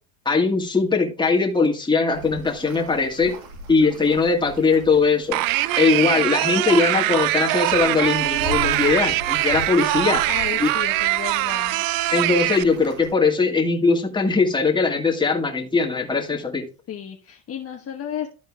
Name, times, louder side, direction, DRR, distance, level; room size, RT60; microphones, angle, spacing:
voice 1, 0.3-3.3 3.7-5.4 5.8-10.2 10.6-10.7 12.1-16.7, left 4 dB, 10° left, 0 dB, 2.1 m, -20 dB
sound 1, 2.1-13.1, right 1 dB, 80° right, 2.3 m, -38 dB
sound 2, 5.3-12.6, right 16 dB, 55° right, 0.5 m, -22 dB
voice 2, 10.3-11.8 16.9-18.3, left 9 dB, 35° left, 1 dB, 1.2 m, -33 dB
13.0 x 4.4 x 3.6 m, 0.35 s
supercardioid pair, 110°, 41 cm